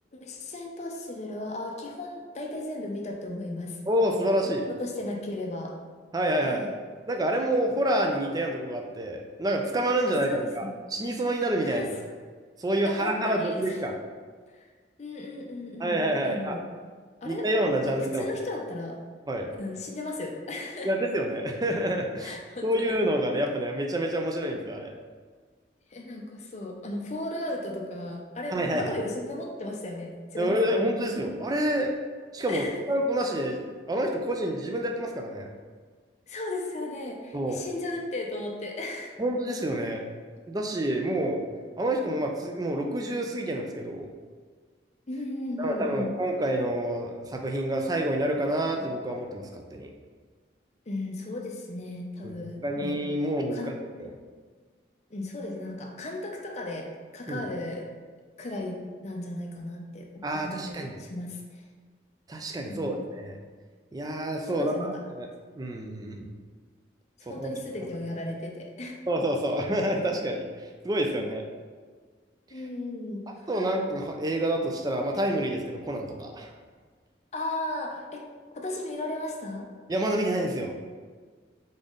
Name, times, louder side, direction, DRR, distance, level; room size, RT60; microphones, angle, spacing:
voice 1, 0.1-3.8 4.8-5.8 6.4-6.7 10.3-10.7 11.6-11.9 12.9-13.8 14.5-14.7 15.0-16.0 16.2-16.6 17.2-17.4 17.8-19.0 19.6-20.9 22.2-23.0 25.9-30.7 32.5-32.8 36.3-39.2 45.1-46.1 50.9-53.0 53.5-53.7 55.1-56.9 57.1-57.9 58.4-58.8 59.0-60.1 60.4-61.6 62.7-63.1 64.5-64.9 66.1-66.2 67.2-69.0 71.1-71.2 72.5-73.5 77.3-78.2 78.5-79.7, left 2 dB, 35° left, 1 dB, 0.5 m, -35 dB
voice 2, 3.9-4.7 6.1-6.6 7.1-11.8 12.6-14.0 15.8-16.6 17.2-18.3 19.3-19.5 20.8-22.4 22.6-24.9 28.5-29.0 30.4-31.9 32.3-35.5 37.3-37.6 39.2-40.0 40.5-41.4 41.8-44.1 45.6-49.9 52.2-52.3 52.6-54.1 57.3-57.4 60.2-61.0 62.3-63.4 63.9-65.3 65.6-66.3 67.3-67.5 69.1-71.4 73.5-76.5 79.9-80.8, right 1 dB, 20° right, 2 dB, 0.4 m, -28 dB
3.9 x 3.8 x 3.6 m, 1.5 s
head